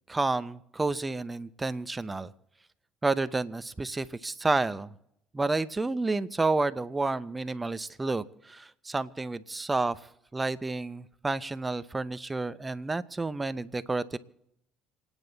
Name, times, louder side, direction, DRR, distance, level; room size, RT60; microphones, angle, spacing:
voice 1, 0.1-2.3 3.0-4.9 5.3-10.0 10.3-14.2, right 3 dB, 20° right, 14 dB, 0.8 m, -30 dB
27.5 x 9.9 x 4.1 m, 0.79 s
hypercardioid pair, 70°, 0 cm